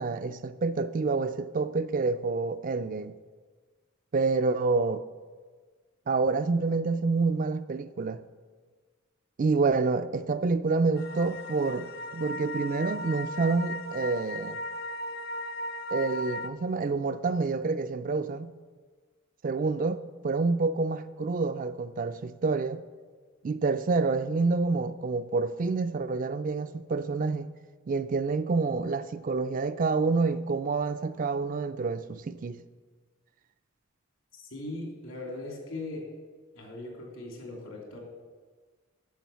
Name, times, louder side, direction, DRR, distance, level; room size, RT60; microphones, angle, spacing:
voice 1, 0.0-3.1 4.1-5.0 6.1-8.2 9.4-14.6 15.9-18.5 19.4-22.8 23.4-27.5 27.9-32.6, right 4 dB, 40° right, 0.3 m, -28 dB
sound 1, 11.0-16.5, left 1 dB, 50° left, 0.4 m, -37 dB
voice 2, 34.3-36.1 36.5-38.0, left 2 dB, 80° left, 2.9 m, -39 dB
10.5 x 6.3 x 6.8 m
head